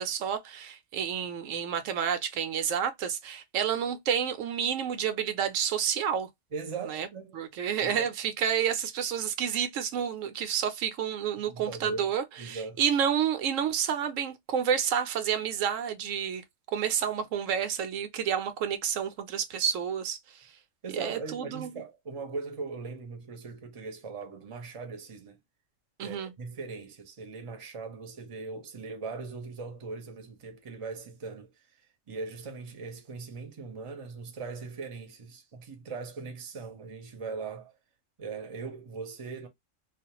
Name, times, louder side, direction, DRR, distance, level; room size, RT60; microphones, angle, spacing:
voice 1, 0.0-6.3 6.9-7.1 7.3-16.4 16.7-20.5 20.9-21.7 26.0-26.3, right 8 dB, 85° right, 1.0 m, -30 dB
voice 2, 6.5-7.4 7.8-8.1 11.5-12.0 12.4-12.8 20.8-25.4 26.0-31.8 32.1-37.7 38.2-39.5, right 4 dB, 35° right, 0.6 m, -40 dB
2.4 x 2.1 x 2.8 m
omnidirectional pair, 1.3 m